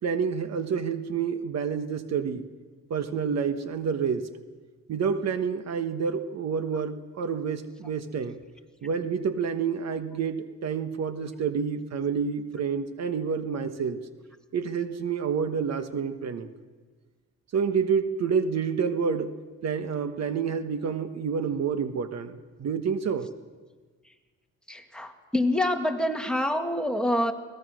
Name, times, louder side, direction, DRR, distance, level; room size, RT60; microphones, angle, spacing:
voice 1, 0.0-2.5 2.9-4.3 4.9-8.4 8.8-14.0 14.5-16.5 17.5-19.3 19.6-23.3, right 6 dB, 60° right, 9 dB, 1.3 m, -28 dB
voice 2, 24.7-27.3, left 1 dB, 5° left, 4 dB, 1.9 m, -26 dB
23.5 x 18.0 x 6.3 m, 1.4 s
cardioid pair, 90°, 30 cm